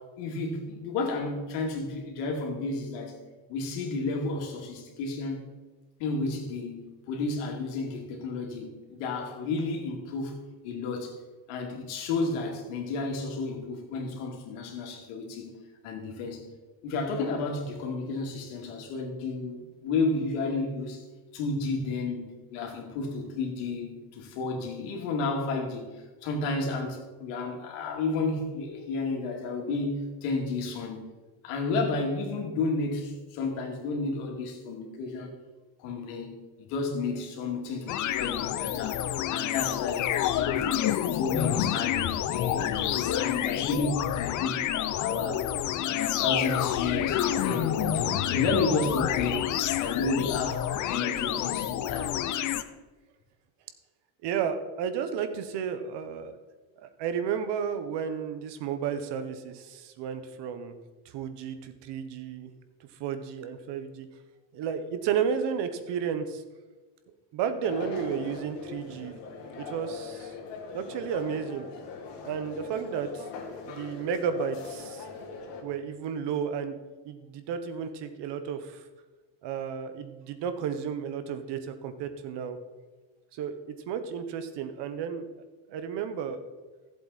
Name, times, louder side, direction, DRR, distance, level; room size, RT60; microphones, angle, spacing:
voice 1, 0.0-3.2 3.5-5.4 6.0-10.3 10.6-11.1 11.5-15.5 15.8-16.4 16.8-21.0 21.3-31.1 31.4-35.3 35.8-36.3 36.7-39.0 39.3-40.7 41.1-44.6 45.0-45.4 45.8-52.1, left 3 dB, 90° left, 2.8 m, -32 dB
sound 1, 37.9-52.6, left 11 dB, 40° left, 0.6 m, -28 dB
voice 2, 54.2-56.4 56.8-60.8 61.0-62.5 63.0-64.1 64.5-66.4 67.3-69.2 69.6-70.3 70.7-71.7 72.2-73.3 73.6-75.0 75.6-76.7 77.0-78.8 79.4-82.6 83.3-85.2 85.7-86.4, right 7 dB, 60° right, 1.3 m, -32 dB
sound 2, 67.6-75.6, left 4 dB, 60° left, 2.5 m, -40 dB
15.0 x 7.9 x 4.3 m
cardioid pair, 150°, 48 cm